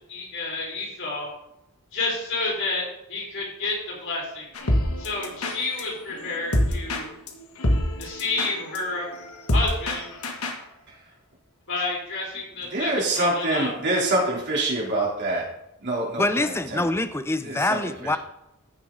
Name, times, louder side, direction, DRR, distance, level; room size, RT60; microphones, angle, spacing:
voice 1, 0.1-1.3 1.9-2.8 3.1-4.5 5.0-7.1 8.0-9.1 9.5-10.1 11.7-13.7, left 3 dB, 60° left, -3 dB, 4.6 m, -30 dB
sound 1, 4.5-10.6, left 1 dB, 90° left, 1.5 m, -27 dB
voice 2, 12.7-15.5 15.8-16.8 17.4-18.1, right 1 dB, 55° right, -3 dB, 3.1 m, -25 dB
voice 3, 16.2-18.2, left 2 dB, 10° left, 11 dB, 0.5 m, -25 dB
14.0 x 6.5 x 3.8 m, 0.84 s
head